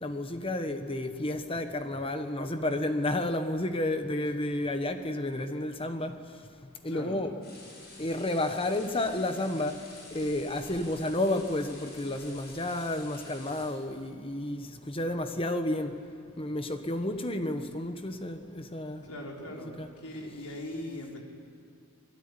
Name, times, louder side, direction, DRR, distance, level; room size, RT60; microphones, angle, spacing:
voice 1, 0.0-6.1 6.8-7.3 8.0-9.8 10.1-15.9 16.4-19.0 19.6-19.9, left 1 dB, 25° left, 1.2 m, -31 dB
voice 2, 6.9-7.2 19.0-21.2, left 1 dB, 85° left, 5.1 m, -40 dB
sound 1, 7.4-13.7, left 2 dB, 45° left, 7.5 m, -49 dB
27.5 x 19.5 x 10.0 m
head